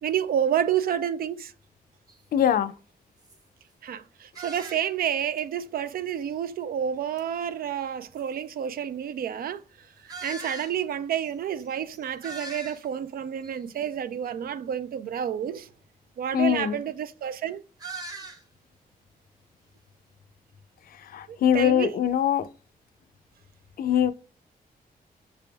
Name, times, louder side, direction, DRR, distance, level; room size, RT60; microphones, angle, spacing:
voice 1, 0.0-1.5 3.8-15.7 16.2-17.6 21.3-22.0, right 9 dB, 75° right, 0.4 m, -29 dB
sound 1, 2.1-2.2 2.8-2.9 3.2-3.4 4.3-5.1 5.4-5.5 7.2-7.3 8.1-8.2 10.1-10.8 11.2-11.3 11.6-11.7 11.9-13.0 13.4-13.8 17.8-18.4, right 2 dB, 25° right, 0.9 m, -40 dB
voice 2, 2.3-2.7 16.3-16.8 21.1-22.5 23.8-24.1, left 9 dB, 70° left, 0.5 m, -22 dB
6.7 x 3.4 x 2.2 m
wide cardioid pair, 135°, 15 cm